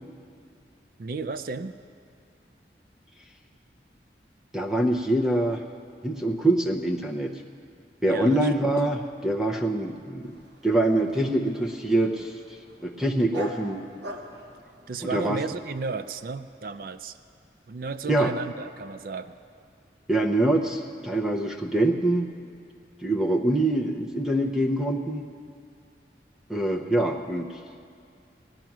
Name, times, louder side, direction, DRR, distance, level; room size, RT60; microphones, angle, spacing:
voice 1, 1.0-1.7 8.1-8.7 14.9-17.2 17.7-19.4, right 4 dB, 55° right, 12 dB, 0.4 m, -33 dB
voice 2, 4.5-5.6 6.0-7.3 8.0-12.3 12.8-13.8 15.1-15.4 18.1-18.3 20.1-22.3 23.0-25.3 26.5-27.6, right 1 dB, 5° right, 2 dB, 0.7 m, -24 dB
Dog, 10.2-15.6, right 1 dB, 80° right, 1.3 m, -44 dB
18.5 x 10.5 x 6.0 m, 2.5 s
head